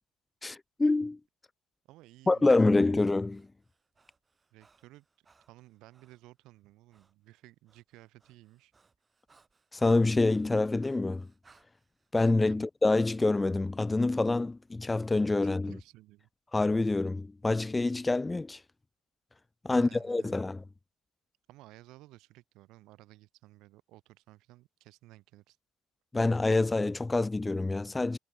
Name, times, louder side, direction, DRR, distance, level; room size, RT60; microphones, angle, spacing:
voice 1, 0.4-1.2 2.3-3.4 9.7-11.3 12.1-15.7 16.5-18.6 19.6-20.6 26.1-28.2, left 2 dB, 15° left, 0.4 m, -26 dB
voice 2, 1.9-3.0 4.5-8.7 12.5-12.7 15.4-16.3 19.7-20.4 21.5-25.6, right 18 dB, 70° right, 6.0 m, -56 dB
Breathing, 3.3-6.2 6.9-7.1 7.4-12.4, right 4 dB, 25° right, 3.3 m, -64 dB
cardioid pair, 105°, 0 cm